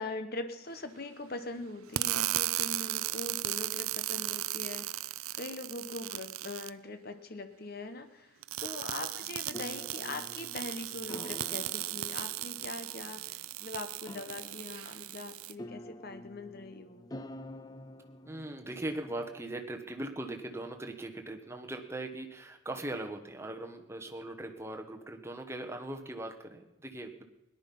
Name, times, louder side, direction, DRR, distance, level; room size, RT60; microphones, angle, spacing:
voice 1, 0.0-17.1, left 2 dB, 45° left, 9 dB, 1.1 m, -42 dB
sound 1, 1.9-6.7 8.4-15.5, right 16 dB, 90° right, 0.4 m, -36 dB
sound 2, 9.2-19.7, left 1 dB, 20° left, 0.4 m, -49 dB
voice 2, 18.2-27.2, right 1 dB, 10° right, 3 dB, 1.2 m, -40 dB
18.0 x 11.0 x 5.5 m, 0.97 s
head